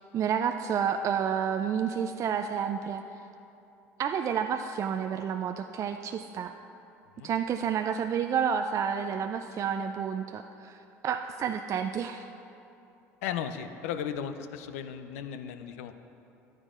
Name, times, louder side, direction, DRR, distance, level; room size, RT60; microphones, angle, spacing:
voice 1, 0.1-3.0 4.0-6.5 7.2-12.3, right 7 dB, 45° right, 7 dB, 0.3 m, -30 dB
voice 2, 13.2-15.9, left 8 dB, 80° left, 9 dB, 0.5 m, -35 dB
11.5 x 9.6 x 2.5 m, 2.8 s
hypercardioid pair, 75°, 8 cm